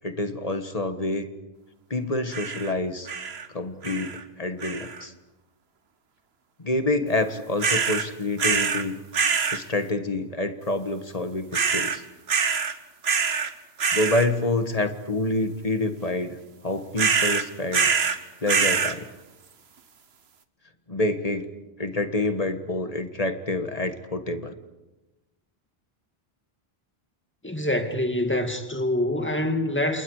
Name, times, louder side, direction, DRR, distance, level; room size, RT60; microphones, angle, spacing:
voice 1, 0.0-1.3 1.9-3.1 3.5-5.1 6.6-9.0 9.5-12.0 13.9-17.9 18.4-19.1 20.9-21.4 21.8-24.5, left 2 dB, 35° left, 1.7 m, -27 dB
sound 1, 2.3-2.7 3.1-3.5 3.8-4.2 4.6-5.0 7.6-8.1 8.4-8.8 9.1-9.6 11.5-12.0 12.3-12.7 13.0-13.5 13.8-14.3 17.0-18.2 18.5-19.0, right 6 dB, 75° right, 1.5 m, -24 dB
voice 2, 27.4-30.0, left 1 dB, 10° left, 2.1 m, -25 dB
30.0 x 28.0 x 4.9 m
omnidirectional pair, 1.1 m